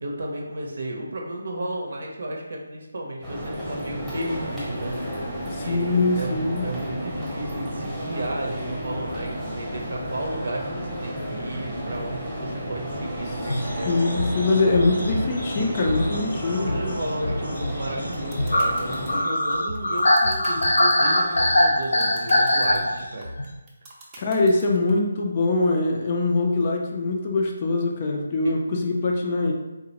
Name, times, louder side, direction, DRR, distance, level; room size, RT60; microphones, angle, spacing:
voice 1, 0.0-5.2 5.6-13.9 16.6-23.3 28.4-28.5, right 1 dB, 70° right, 0 dB, 0.7 m, -33 dB
sound 1, 3.2-19.2, equal, 5° right, 0.9 m, -32 dB
voice 2, 5.4-6.7 13.9-16.7 24.2-29.5, left 3 dB, 30° left, 0 dB, 0.4 m, -23 dB
sound 2, 13.5-23.5, left 1 dB, 85° left, 0.6 m, -23 dB
sound 3, 17.9-24.9, right 2 dB, 20° right, 0.5 m, -44 dB
3.7 x 2.1 x 2.9 m, 1.1 s
figure-of-eight pair, 165°, 0 cm